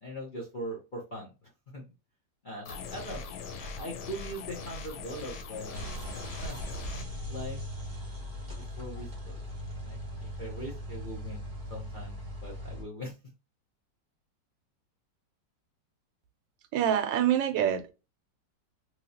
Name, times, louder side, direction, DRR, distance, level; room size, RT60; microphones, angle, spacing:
voice 1, 0.0-1.8 2.4-3.2 3.6-6.6 7.3-7.6 8.8-9.4 9.7-13.2, equal, 40° left, 0.7 m, -41 dB
sound 1, 2.7-7.1, left 4 dB, 90° left, 1.4 m, -41 dB
sound 2, 5.7-12.8, equal, 30° right, 1.2 m, -39 dB
voice 2, 16.7-17.9, right 10 dB, 80° right, 1.2 m, -26 dB
3.0 x 3.0 x 2.7 m
omnidirectional pair, 2.0 m